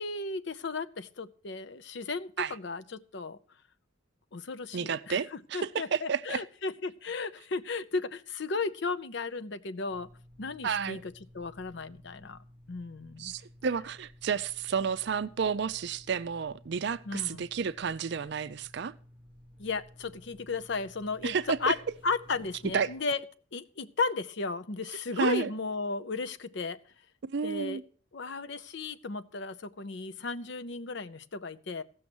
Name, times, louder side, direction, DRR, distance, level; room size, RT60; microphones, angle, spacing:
voice 1, 0.0-3.4 4.3-10.1 10.4-12.4 12.7-13.3 17.0-17.4 19.6-21.8 22.0-23.2 23.5-26.8 27.4-27.8 28.1-31.8, left 4 dB, 60° left, 0.6 m, -35 dB
voice 2, 4.7-6.4 10.6-11.0 13.2-18.9 21.2-21.7 22.7-22.9 25.2-25.5 27.2-27.8, right 6 dB, 55° right, 0.4 m, -31 dB
sound 1, 9.9-23.0, equal, 5° right, 5.5 m, -55 dB
15.5 x 6.3 x 6.1 m
head